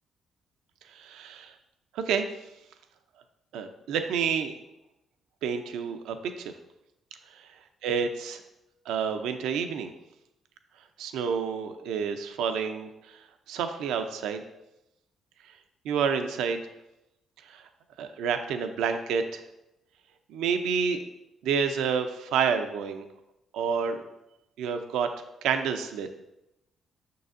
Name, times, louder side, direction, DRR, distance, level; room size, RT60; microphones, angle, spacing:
voice 1, 0.9-1.5 1.9-2.3 3.5-4.5 5.4-6.5 7.8-8.4 8.9-9.9 11.0-13.2 13.5-14.4 15.8-16.6 17.5-17.6 18.0-19.4 20.3-21.0 21.4-23.1 23.5-24.0 24.6-25.1 25.4-26.2, right 6 dB, 90° right, 7 dB, 0.5 m, -29 dB
6.7 x 6.1 x 2.5 m, 0.87 s
cardioid pair, 90°, 0 cm